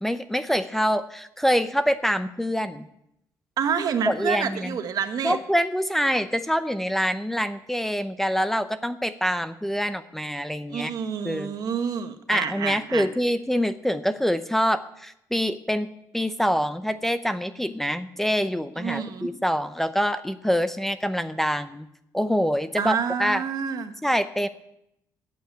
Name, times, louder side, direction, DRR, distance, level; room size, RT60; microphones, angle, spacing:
voice 1, 0.0-2.9 4.0-4.7 5.2-10.9 11.2-11.5 12.3-21.9 22.1-23.4 24.0-24.5, equal, 5° left, 11 dB, 0.6 m, -25 dB
voice 2, 3.6-5.4 10.7-13.1 18.8-19.3 22.8-23.9, right 7 dB, 60° right, 8 dB, 1.4 m, -28 dB
11.5 x 8.6 x 8.9 m, 0.80 s
cardioid pair, 120°, 8 cm